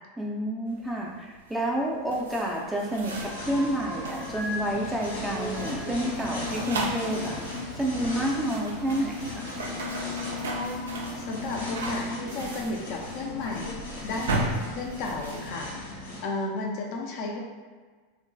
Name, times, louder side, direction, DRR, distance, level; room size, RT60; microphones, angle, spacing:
voice 1, 0.2-7.4 7.8-9.5, right 1 dB, 10° right, -2 dB, 0.5 m, -29 dB
sound 1, 0.7-15.5, right 2 dB, 70° right, 0.4 m, -37 dB
sound 2, 1.6-2.5 2.8-4.6 4.9-7.4 8.5-8.6 9.5-10.1 10.4-10.8, equal, 50° right, 1.0 m, -40 dB
sound 3, 3.0-16.2, left 3 dB, 85° left, 0.9 m, -36 dB
voice 2, 11.2-17.4, left 2 dB, 50° left, 0 dB, 0.5 m, -34 dB
2.9 x 2.6 x 2.3 m, 1.5 s
figure-of-eight pair, 85°, 0 cm